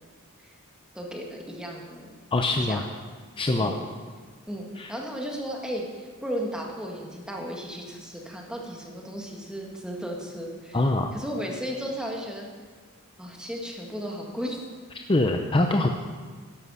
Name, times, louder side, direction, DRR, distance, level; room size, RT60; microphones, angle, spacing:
voice 1, 0.9-2.2 2.5-2.9 3.6-3.8 4.5-12.5 13.2-14.6, equal, 5° right, -1 dB, 1.8 m, -35 dB
voice 2, 2.3-2.8 3.4-3.7 4.8-4.9 10.7-11.1 15.1-15.9, left 2 dB, 25° left, 4 dB, 0.6 m, -23 dB
13.0 x 11.5 x 5.6 m, 1.5 s
head